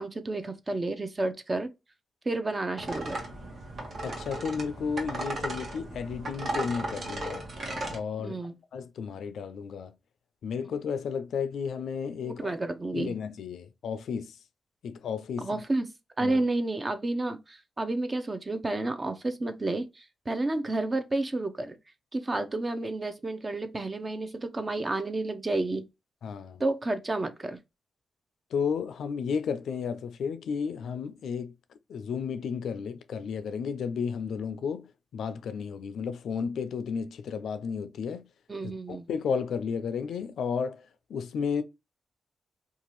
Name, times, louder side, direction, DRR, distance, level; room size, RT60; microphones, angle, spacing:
voice 1, 0.0-1.7 2.3-3.2 8.2-8.6 12.2-13.2 15.4-15.9 16.2-21.8 22.1-25.9 26.6-27.6 38.5-39.1, right 2 dB, 30° right, 0.5 m, -31 dB
sound 1, 2.8-8.0, right 1 dB, 60° right, 1.0 m, -36 dB
voice 2, 4.0-7.4 7.9-8.4 8.7-9.9 10.4-12.5 12.9-14.4 14.8-15.6 16.2-16.4 26.2-26.6 28.5-31.5 31.9-38.2 38.6-41.6, left 6 dB, 80° left, 0.3 m, -33 dB
2.7 x 2.3 x 3.0 m
cardioid pair, 65°, 0 cm